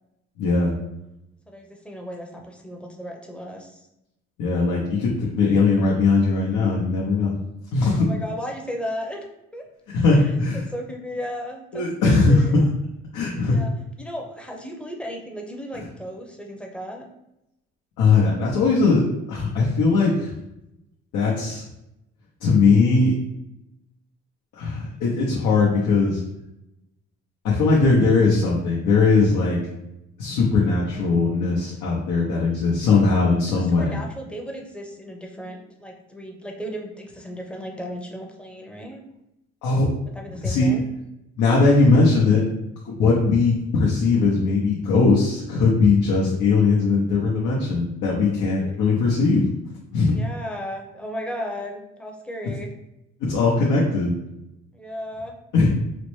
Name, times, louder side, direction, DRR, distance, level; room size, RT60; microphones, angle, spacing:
voice 1, 0.4-0.7 4.4-7.4 7.7-8.1 9.9-10.6 11.7-12.5 13.1-13.6 18.0-20.3 21.1-21.6 22.4-23.1 24.5-26.2 27.4-29.6 30.2-34.0 39.6-39.9 40.4-40.7 41.4-42.4 42.8-49.5 49.9-50.1 53.2-54.1 55.5-55.7, left 4 dB, 90° left, -4 dB, 0.7 m, -19 dB
voice 2, 1.5-3.8 8.0-9.2 9.5-9.6 10.1-10.3 10.7-11.8 12.3-12.6 13.5-13.7 14.0-17.1 33.5-39.0 40.1-40.9 48.5-48.7 50.1-52.7 54.7-55.4, equal, 5° left, 1 dB, 0.6 m, -35 dB
4.1 x 2.1 x 3.1 m, 0.87 s
cardioid pair, 90°, 30 cm